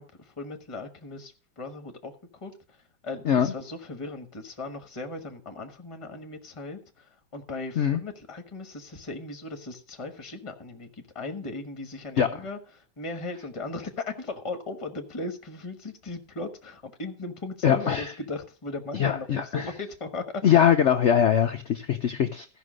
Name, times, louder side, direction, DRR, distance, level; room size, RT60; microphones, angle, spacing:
voice 1, 0.0-20.7, left 2 dB, 20° left, 1.1 m, -37 dB
voice 2, 17.6-18.1 19.0-19.7 20.4-22.5, left 9 dB, 75° left, 0.6 m, -22 dB
14.0 x 5.8 x 6.2 m
omnidirectional pair, 1.9 m